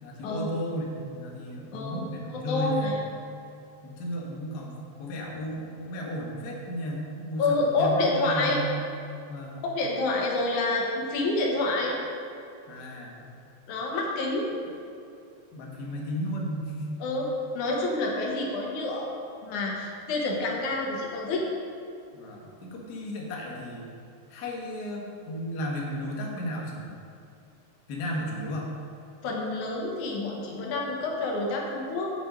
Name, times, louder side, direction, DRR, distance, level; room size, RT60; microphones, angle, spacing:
voice 1, 0.0-2.9 3.8-8.7 9.3-9.6 12.7-13.3 15.5-17.0 22.1-23.8 24.3-26.9 27.9-28.7, equal, 45° left, -1 dB, 1.4 m, -34 dB
voice 2, 2.3-2.9 7.4-8.6 9.6-12.0 13.7-14.5 17.0-17.3 17.5-19.1 19.4-21.5 29.2-32.1, left 2 dB, 90° left, -1 dB, 2.8 m, -28 dB
8.0 x 7.6 x 5.1 m, 2.6 s
omnidirectional pair, 3.3 m